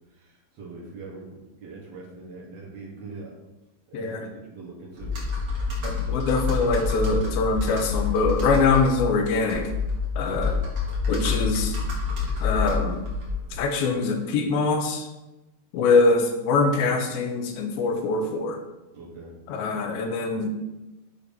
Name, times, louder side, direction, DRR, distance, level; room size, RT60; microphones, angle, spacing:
voice 1, 0.2-3.3 3.9-5.2 10.3-10.6 18.9-19.3, right 3 dB, 60° right, -4 dB, 1.9 m, -42 dB
voice 2, 3.9-4.3 5.8-9.7 10.2-10.6 11.1-11.8 12.4-13.0 13.5-15.1 15.7-18.6 19.5-20.5, left 3 dB, 80° left, 4 dB, 2.5 m, -23 dB
Computer keyboard, 5.0-13.6, left 4 dB, 90° right, 0.9 m, -27 dB
8.4 x 2.9 x 5.2 m, 1.0 s
omnidirectional pair, 4.4 m